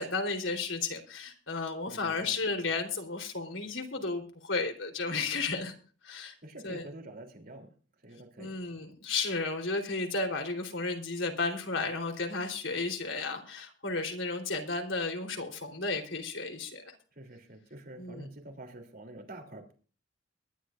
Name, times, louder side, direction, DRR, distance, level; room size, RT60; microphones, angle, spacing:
voice 1, 0.0-5.7 6.0-6.3 6.6-6.9 8.4-16.9 18.0-18.3, left 3 dB, 90° left, 4 dB, 3.7 m, -33 dB
voice 2, 1.9-2.4 6.4-7.7 8.0-8.6 17.1-19.7, right 1 dB, 50° right, 4 dB, 3.2 m, -47 dB
22.5 x 11.5 x 2.6 m, 0.38 s
head